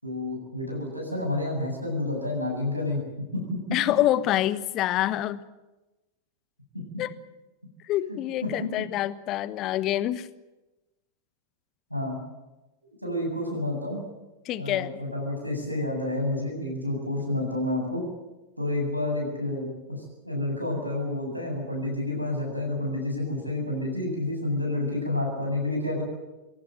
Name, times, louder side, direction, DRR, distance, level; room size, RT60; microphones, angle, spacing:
voice 1, 0.0-3.0 3.3-3.6 6.7-6.8 8.1-8.2 11.9-12.2 13.0-14.0 14.6-18.0 18.6-26.0, left 2 dB, 90° right, 0 dB, 7.9 m, -29 dB
voice 2, 3.7-5.4 7.0-7.1 7.9-10.3 14.4-14.9, left 13 dB, 35° left, 16 dB, 1.2 m, -26 dB
24.0 x 17.0 x 9.1 m, 1.1 s
figure-of-eight pair, 90°, 0 cm